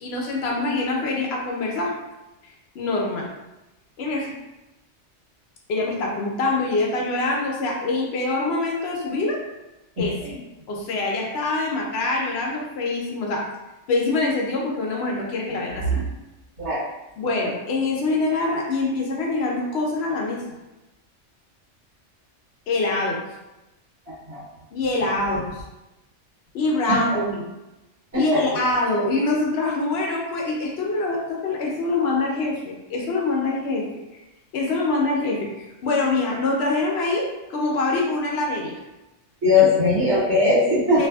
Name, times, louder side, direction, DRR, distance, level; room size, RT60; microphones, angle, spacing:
voice 1, 0.0-1.9 2.7-3.3 4.0-4.3 5.7-9.4 10.0-10.3 10.7-13.5 13.9-15.8 17.2-20.4 22.7-23.2 24.7-25.5 26.5-27.4 28.1-33.8 34.5-38.7 41.0-41.1, left 2 dB, 65° left, -1 dB, 0.8 m, -24 dB
voice 2, 39.4-41.1, left 3 dB, 65° right, -8 dB, 1.4 m, -19 dB
2.6 x 2.4 x 2.2 m, 1.0 s
omnidirectional pair, 1.2 m